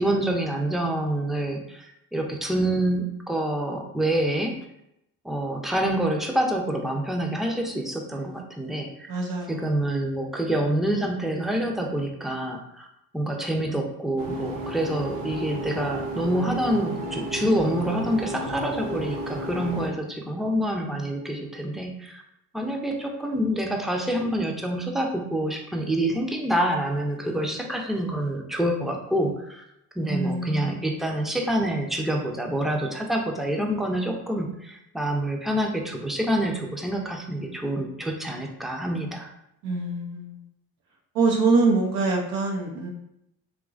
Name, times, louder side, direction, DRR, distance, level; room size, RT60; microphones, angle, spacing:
voice 1, 0.0-4.6 5.2-9.2 9.5-12.9 13.1-22.2 22.5-29.6 30.0-39.3, right 1 dB, ahead, 1 dB, 0.4 m, -27 dB
voice 2, 9.1-9.6 30.0-30.9 39.6-40.4 41.1-42.9, right 3 dB, 85° right, -1 dB, 0.6 m, -24 dB
sound 1, 14.2-19.9, right 1 dB, 50° right, 0.7 m, -33 dB
2.9 x 2.4 x 2.4 m, 0.80 s
hypercardioid pair, 50°, 45 cm